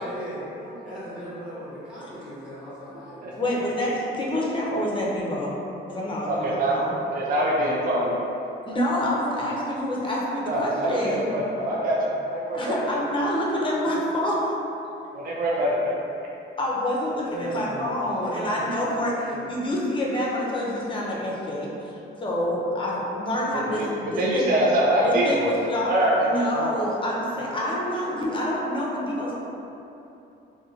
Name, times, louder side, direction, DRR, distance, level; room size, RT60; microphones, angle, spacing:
voice 1, 0.0-3.4 3.8-4.1 13.8-13.9 17.2-17.9 18.2-18.8 19.1-19.6, right 1 dB, 5° right, -10 dB, 1.1 m, -37 dB
voice 2, 0.6-0.9 2.0-2.1 3.3-5.5 5.9-6.9 8.7-11.3 12.5-14.5 16.6-24.6 25.0-25.9 26.2-29.3, left 1 dB, 25° left, -4 dB, 0.5 m, -27 dB
voice 3, 6.3-8.2 10.5-12.0 12.3-12.8 15.1-15.9 23.7-25.6 25.8-26.5, right 1 dB, 45° right, -5 dB, 0.4 m, -24 dB
2.5 x 2.1 x 2.7 m, 2.8 s
cardioid pair, 90°, 20 cm